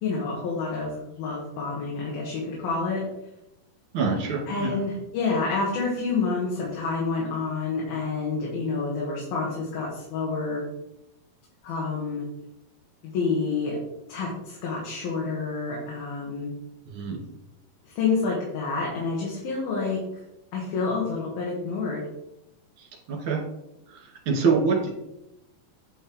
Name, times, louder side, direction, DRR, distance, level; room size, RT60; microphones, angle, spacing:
voice 1, 0.0-3.0 4.5-10.6 11.6-12.2 13.0-13.8 14.1-16.5 18.0-20.0 20.5-22.1, left 4 dB, 75° left, -4 dB, 3.6 m, -28 dB
voice 2, 3.9-4.7 16.9-17.2 23.3-23.4 24.3-24.9, right 4 dB, 40° right, -2 dB, 2.8 m, -24 dB
9.3 x 5.5 x 4.6 m, 0.88 s
omnidirectional pair, 4.3 m